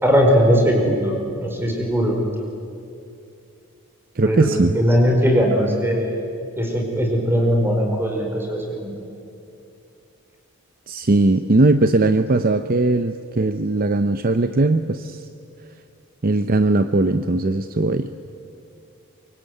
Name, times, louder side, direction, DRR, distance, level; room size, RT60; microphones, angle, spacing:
voice 1, 0.0-1.1 1.4-2.2 4.2-4.5 4.7-6.2 6.6-9.0, equal, 10° right, 1 dB, 4.8 m, -19 dB
voice 2, 4.2-4.7 10.9-15.2 16.2-18.1, right 2 dB, 45° right, 10 dB, 0.7 m, -19 dB
24.0 x 23.5 x 9.4 m, 2.6 s
head